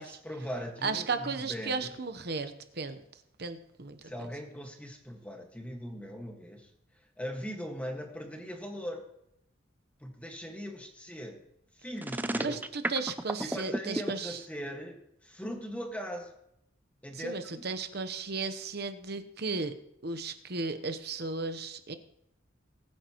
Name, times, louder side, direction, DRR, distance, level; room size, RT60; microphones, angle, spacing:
voice 1, 0.0-1.9 4.0-6.7 7.2-9.1 10.0-11.4 11.7-12.6 13.4-16.4 17.0-17.7, equal, 5° left, 2 dB, 1.7 m, -40 dB
voice 2, 0.8-3.0 3.4-4.0 12.4-14.4 17.1-19.7 20.0-21.9, right 4 dB, 55° right, 10 dB, 1.0 m, -35 dB
sound 1, 12.0-14.1, right 1 dB, 10° right, 0.4 m, -32 dB
20.5 x 9.3 x 3.0 m, 0.77 s
head